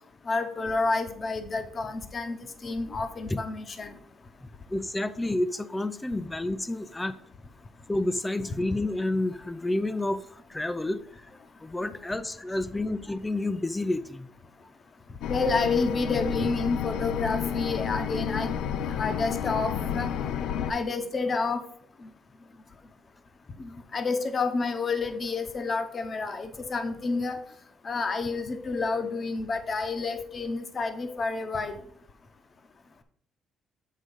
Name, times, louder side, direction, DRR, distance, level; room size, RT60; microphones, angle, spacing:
voice 1, 0.3-3.9 15.3-18.6 18.9-20.1 20.7-21.6 23.6-27.4 27.8-31.7, left 3 dB, 30° left, 7 dB, 0.9 m, -29 dB
voice 2, 4.7-7.2 7.9-11.0 11.6-14.3, left 2 dB, 10° left, 11 dB, 0.4 m, -29 dB
sound 1, 15.2-20.7, left 8 dB, 80° left, 0.5 m, -31 dB
8.1 x 3.7 x 5.3 m, 0.65 s
cardioid pair, 135°, 0 cm